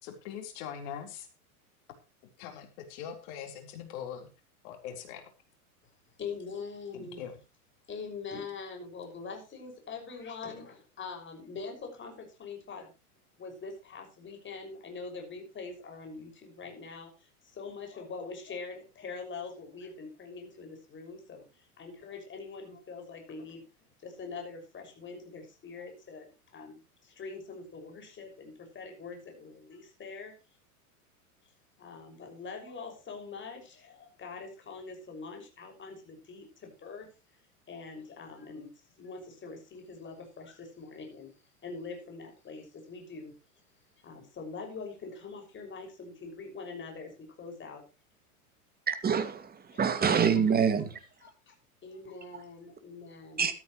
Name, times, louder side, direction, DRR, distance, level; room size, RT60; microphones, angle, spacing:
voice 1, 0.0-1.3 2.4-4.3 4.6-5.2 6.9-7.3, left 8 dB, 55° left, 4.2 m, -42 dB
voice 2, 6.2-7.2 7.9-12.9 13.4-23.7 24.0-26.3 26.5-30.3 31.8-37.1 37.7-38.7 39.0-41.3 41.6-43.3 44.0-47.1 47.4-47.8 49.7-49.8 50.1-50.4 51.2-51.5 51.8-53.5, left 4 dB, 25° left, 6.1 m, -43 dB
voice 3, 48.9-49.5 49.8-51.0 53.4-53.5, right 6 dB, 20° right, 2.3 m, -25 dB
13.5 x 13.5 x 3.1 m
hypercardioid pair, 105°, 45 cm